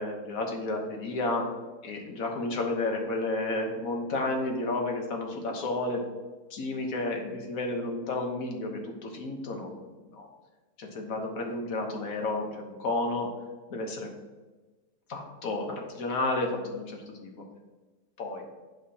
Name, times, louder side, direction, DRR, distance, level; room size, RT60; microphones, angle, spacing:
voice 1, 0.0-1.4 1.8-6.0 6.5-10.3 10.8-13.3 13.7-14.1 15.1-17.4 18.2-18.4, left 2 dB, 60° left, 2 dB, 1.5 m, -32 dB
8.6 x 5.8 x 2.8 m, 1.3 s
omnidirectional pair, 1.7 m